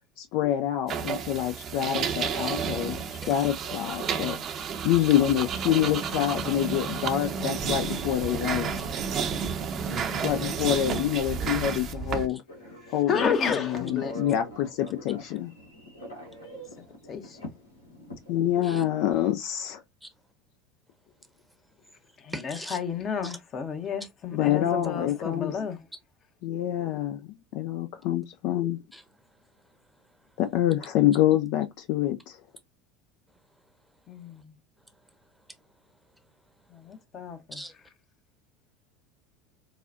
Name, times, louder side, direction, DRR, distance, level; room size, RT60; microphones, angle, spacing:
voice 1, 0.2-3.0 3.3-4.4 4.8-8.9 10.2-12.4 12.9-13.3 13.6-15.5 18.3-19.8 24.3-25.6 26.4-28.8 30.4-32.4, left 12 dB, 60° left, 0.4 m, -26 dB
sound 1, 0.9-12.3, right 7 dB, 40° right, 0.7 m, -31 dB
voice 2, 9.7-10.2 11.7-11.9 18.6-18.8 20.0-20.1 22.3-22.8 23.2-23.4 28.9-29.0 37.5-37.7, right 1 dB, ahead, 0.9 m, -40 dB
Telephone, 12.5-18.5, equal, 90° left, 1.3 m, -44 dB
voice 3, 13.1-14.2 17.1-17.5 22.2-25.8 34.1-34.6 36.7-37.6, left 6 dB, 40° left, 0.9 m, -31 dB
4.8 x 2.3 x 2.5 m
figure-of-eight pair, 75°, 0 cm